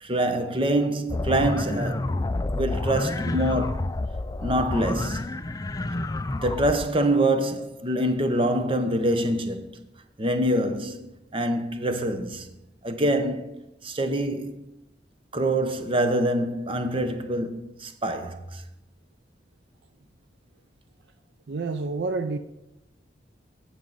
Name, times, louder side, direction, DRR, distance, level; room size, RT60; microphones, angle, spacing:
voice 1, 0.0-2.2 2.5-3.8 4.4-5.4 6.3-9.8 10.2-12.5 12.8-13.6 13.8-14.6 15.3-18.6, right 1 dB, 30° right, 0.8 m, -25 dB
sound 1, 1.1-6.8, left 2 dB, 20° left, 0.3 m, -29 dB
voice 2, 21.5-22.4, right 3 dB, 65° right, 0.5 m, -28 dB
16.5 x 6.2 x 4.0 m
head